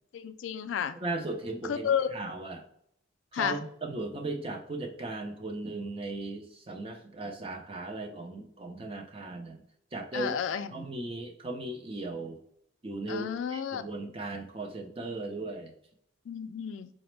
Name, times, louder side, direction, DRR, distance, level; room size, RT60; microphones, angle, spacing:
voice 1, 0.1-0.9 1.6-2.1 3.3-3.6 10.1-10.9 13.1-13.8 16.3-16.9, left 8 dB, 80° left, 10 dB, 0.3 m, -31 dB
voice 2, 1.0-2.6 3.3-9.6 9.9-10.3 10.7-12.4 12.8-15.7, right 2 dB, 30° right, 3 dB, 0.5 m, -37 dB
4.9 x 2.1 x 3.2 m, 0.68 s
head